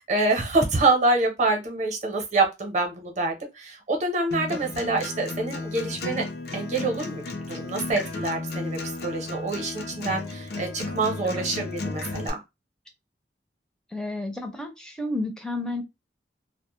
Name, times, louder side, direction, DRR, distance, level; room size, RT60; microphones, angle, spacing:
voice 1, 0.0-6.2 6.5-7.2 7.5-12.4, right 2 dB, 40° right, 0.7 m, -26 dB
Acoustic guitar, 4.3-12.3, left 3 dB, 60° left, 0.5 m, -34 dB
voice 2, 13.9-15.8, left 2 dB, 5° left, 0.5 m, -32 dB
2.1 x 2.0 x 2.9 m
head